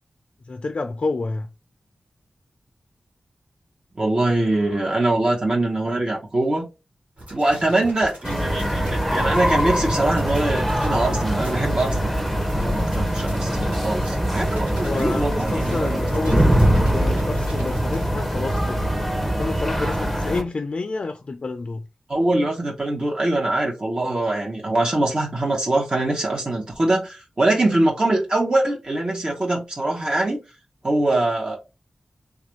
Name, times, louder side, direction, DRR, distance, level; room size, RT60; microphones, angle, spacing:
voice 1, 0.5-1.5 14.8-18.8 19.4-21.8, left 3 dB, 50° left, 0.3 m, -29 dB
voice 2, 4.0-6.6 7.3-12.2 12.5-16.0 22.1-30.4 30.8-31.6, right 2 dB, 40° right, 0.8 m, -23 dB
sound 1, 7.2-18.1, right 1 dB, 80° right, 2.1 m, -38 dB
sound 2, 8.2-20.4, equal, ahead, 0.7 m, -22 dB
3.4 x 2.4 x 3.0 m
wide cardioid pair, 105°, 2 cm